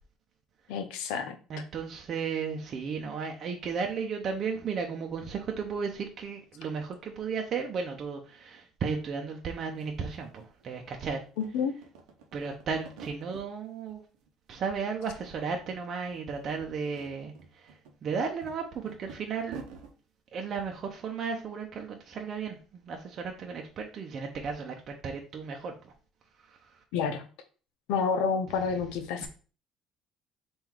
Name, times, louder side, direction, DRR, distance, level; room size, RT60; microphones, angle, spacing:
voice 1, 0.7-1.4 11.4-11.7 26.9-27.2 27.9-29.3, left 6 dB, 80° left, 0.7 m, -29 dB
voice 2, 1.5-11.2 12.3-14.0 14.5-19.6 20.3-25.9 26.4-26.8 29.2-29.3, right 5 dB, 50° right, 0.7 m, -34 dB
sound 1, 9.5-9.6 9.8-10.9 11.3-13.5 13.9-14.6 14.9-15.8 16.0-16.2 16.7-19.9, right 5 dB, 85° right, 0.8 m, -49 dB
3.8 x 2.6 x 4.5 m
supercardioid pair, 85°, 0 cm